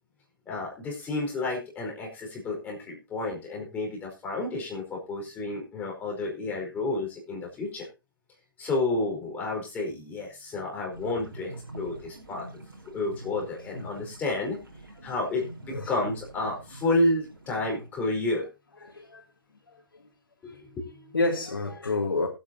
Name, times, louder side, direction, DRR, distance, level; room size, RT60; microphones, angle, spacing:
voice 1, 0.5-7.9 8.6-12.5 12.9-14.6 15.0-18.5 20.4-21.1, left 2 dB, 15° left, 0 dB, 4.7 m, -30 dB
sound 1, 10.9-17.9, right 2 dB, 80° right, 3.9 m, -45 dB
voice 2, 18.8-19.2 19.7-20.0 20.5-20.6 21.1-22.3, left 3 dB, 75° left, -1 dB, 2.5 m, -30 dB
20.5 x 8.6 x 2.8 m, 0.27 s
figure-of-eight pair, 130°, 12 cm